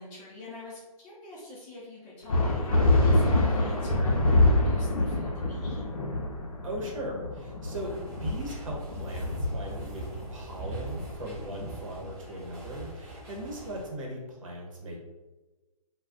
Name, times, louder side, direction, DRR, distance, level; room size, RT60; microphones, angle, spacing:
voice 1, 0.0-5.9, left 2 dB, 20° left, -6 dB, 0.6 m, -45 dB
sound 1, 2.3-12.3, left 2 dB, 65° left, 0.7 m, -26 dB
voice 2, 6.6-15.0, right 1 dB, 60° right, -1 dB, 0.9 m, -38 dB
sound 2, 7.6-13.9, right 2 dB, 15° right, 1.2 m, -42 dB
2.4 x 2.2 x 3.5 m, 1.2 s
figure-of-eight pair, 140°, 19 cm